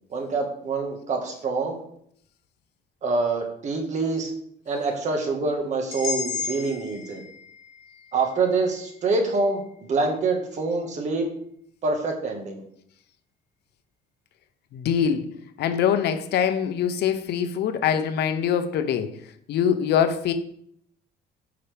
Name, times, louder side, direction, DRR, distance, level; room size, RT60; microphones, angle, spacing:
voice 1, 0.1-1.8 3.0-4.3 4.7-7.2 8.1-9.6 9.9-11.3 11.8-12.6, right 3 dB, 40° right, 1.6 m, -25 dB
sound 1, 5.9-9.9, left 6 dB, 55° left, 2.2 m, -35 dB
voice 2, 14.7-15.3 15.6-19.2 19.5-20.3, left 8 dB, 70° left, 0.8 m, -23 dB
8.9 x 5.7 x 3.5 m
cardioid pair, 155°, 18 cm